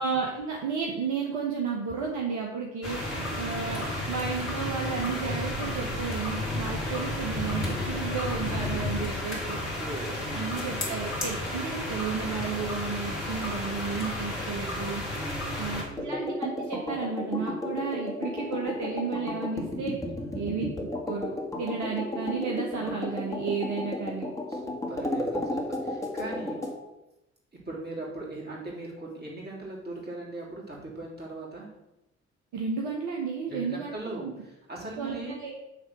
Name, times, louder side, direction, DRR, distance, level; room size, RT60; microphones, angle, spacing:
voice 1, 0.0-9.6 10.3-15.0 15.6-20.0 20.3-20.7 21.1-24.3 32.5-33.9 34.2-34.3 35.0-35.5, right 5 dB, 55° right, 0 dB, 1.1 m, -33 dB
sound 1, 2.8-15.8, left 1 dB, 85° left, 1.4 m, -32 dB
voice 2, 3.1-3.9 4.6-4.7 9.5-11.2 15.1-16.2 20.2-20.6 24.5-26.6 27.5-31.7 33.5-35.4, right 2 dB, 30° right, -4 dB, 3.1 m, -40 dB
sound 2, 16.0-26.8, left 1 dB, 10° left, 1.9 m, -33 dB
8.7 x 3.4 x 6.2 m, 0.93 s
figure-of-eight pair, 40°, 34 cm